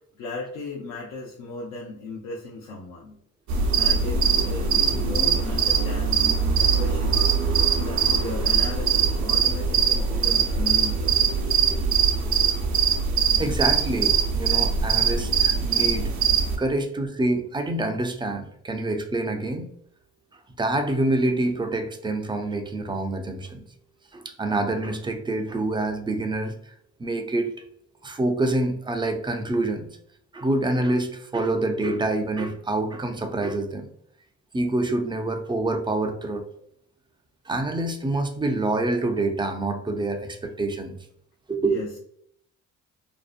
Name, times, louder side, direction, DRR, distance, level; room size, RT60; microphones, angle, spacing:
voice 1, 0.1-3.2 3.5-6.2 6.6-7.3 7.8-11.4 41.6-42.0, left 3 dB, 90° left, -3 dB, 0.5 m, -37 dB
sound 1, 3.5-16.6, right 6 dB, 70° right, 0.6 m, -22 dB
voice 2, 13.4-16.1 16.6-19.7 20.6-23.6 24.1-26.5 27.0-27.5 28.0-29.9 30.3-33.9 34.5-36.4 37.5-41.0 41.5-41.9, right 2 dB, 15° right, 6 dB, 0.3 m, -26 dB
2.6 x 2.0 x 2.4 m, 0.68 s
cardioid pair, 90°, 30 cm